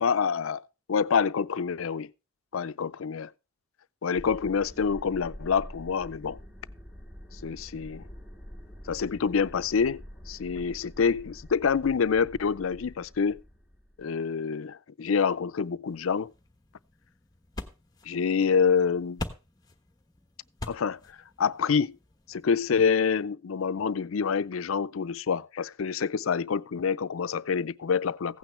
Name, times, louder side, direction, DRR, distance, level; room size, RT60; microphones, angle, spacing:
voice 1, 0.0-0.6 0.9-2.1 2.5-3.3 4.0-6.4 7.4-8.0 8.9-13.4 14.0-16.3 18.1-19.2 20.7-21.0 21.4-22.0 22.3-28.4, left 6 dB, 85° left, 0.5 m, -27 dB
sound 1, 4.1-14.1, equal, 5° right, 2.6 m, -46 dB
sound 2, 15.9-23.0, left 2 dB, 20° left, 1.2 m, -44 dB
16.0 x 9.1 x 3.2 m
head